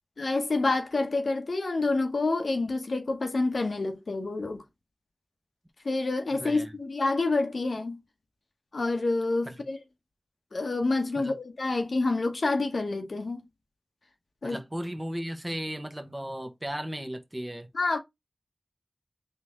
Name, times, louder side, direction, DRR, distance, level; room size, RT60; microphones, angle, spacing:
voice 1, 0.2-4.6 5.8-8.0 8.7-9.8 10.5-13.4 14.4-14.6 17.7-18.0, left 3 dB, 80° left, 1.0 m, -28 dB
voice 2, 6.3-6.7 9.4-9.5 11.1-11.3 14.4-17.7, equal, 20° right, 1.1 m, -35 dB
4.0 x 3.1 x 3.6 m
cardioid pair, 40°, 0 cm